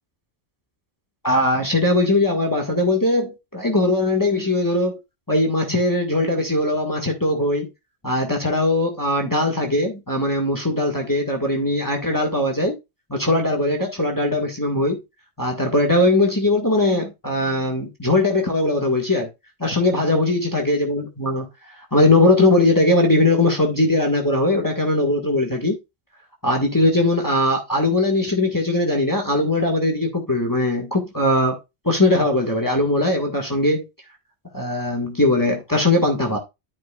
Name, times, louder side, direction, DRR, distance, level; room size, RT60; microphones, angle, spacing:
voice 1, 1.2-5.0 5.3-7.7 8.0-12.8 13.1-15.0 15.4-19.3 19.6-21.5 21.9-25.8 26.4-31.6 31.8-33.8 34.5-36.4, left 2 dB, 15° left, 1.9 m, -20 dB
13.0 x 5.3 x 2.4 m
omnidirectional pair, 1.2 m